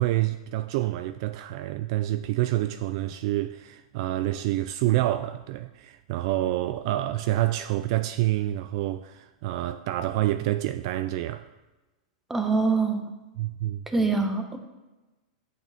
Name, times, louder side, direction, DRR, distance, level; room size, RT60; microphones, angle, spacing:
voice 1, 0.0-11.5 13.4-13.8, right 15 dB, 45° right, 0.3 m, -27 dB
voice 2, 12.3-13.0 13.9-14.6, right 4 dB, 5° right, 0.9 m, -24 dB
11.5 x 8.2 x 3.5 m
supercardioid pair, 155°, 4 cm